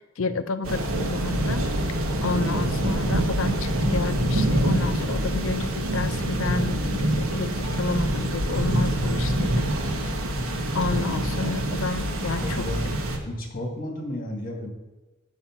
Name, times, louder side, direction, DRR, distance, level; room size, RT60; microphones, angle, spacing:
voice 1, 0.2-1.7 2.2-9.7 10.7-12.4, left 4 dB, 70° left, 12 dB, 0.6 m, -30 dB
sound 1, 0.6-13.2, right 1 dB, 85° right, 1.2 m, -25 dB
voice 2, 12.4-12.9 13.2-14.7, left 1 dB, 45° left, 2 dB, 1.8 m, -32 dB
7.2 x 6.3 x 5.8 m, 1.2 s
head